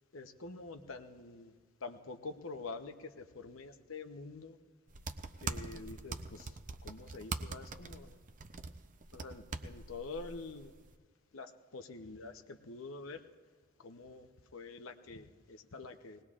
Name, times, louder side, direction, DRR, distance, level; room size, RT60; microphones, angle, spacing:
voice 1, 0.1-1.5 1.8-4.6 5.4-6.5 6.8-8.2 9.1-10.7 11.3-13.2 13.8-16.2, left 3 dB, 70° left, 7 dB, 0.8 m, -46 dB
sound 1, 4.9-10.9, right 4 dB, 40° right, 0.6 m, -43 dB
20.5 x 19.0 x 2.5 m, 1.5 s
head